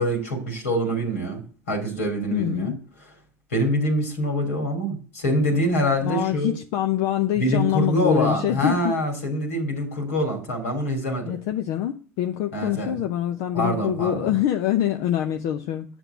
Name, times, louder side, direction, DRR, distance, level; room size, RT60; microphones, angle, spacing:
voice 1, 0.0-1.4 1.7-2.7 3.5-6.5 7.4-11.3 12.5-13.0 13.5-14.3, equal, 85° left, 3.1 m, -25 dB
voice 2, 2.3-2.8 6.0-9.0 11.2-15.9, left 12 dB, 65° left, 0.7 m, -25 dB
8.0 x 6.3 x 8.0 m
hypercardioid pair, 65°, 8 cm